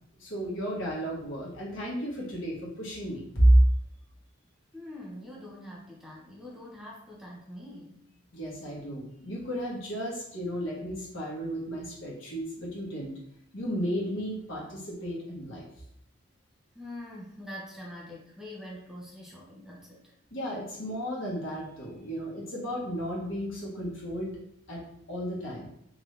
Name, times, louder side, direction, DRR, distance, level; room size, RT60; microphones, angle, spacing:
voice 1, 0.2-3.6 8.3-13.1 13.5-15.6 20.3-24.3 24.7-24.8 25.1-25.7, right 1 dB, 80° left, -5 dB, 1.4 m, -31 dB
voice 2, 4.7-8.0 16.7-20.1, left 1 dB, ahead, -4 dB, 0.6 m, -44 dB
3.9 x 2.7 x 3.2 m, 0.73 s
head